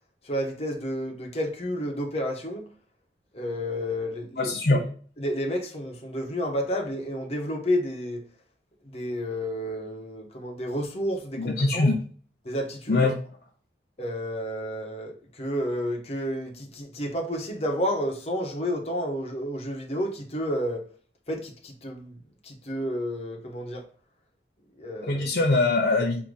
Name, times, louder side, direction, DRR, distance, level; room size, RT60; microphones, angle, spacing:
voice 1, 0.2-2.6 3.3-4.8 5.2-8.2 8.9-11.9 12.4-13.1 14.0-20.8 21.3-22.2 22.4-23.8 24.8-25.2, equal, 35° left, 1.0 m, -30 dB
voice 2, 4.4-4.8 11.4-12.0 12.9-13.1 25.1-26.2, left 2 dB, 60° left, 0.7 m, -22 dB
4.7 x 2.9 x 3.9 m
head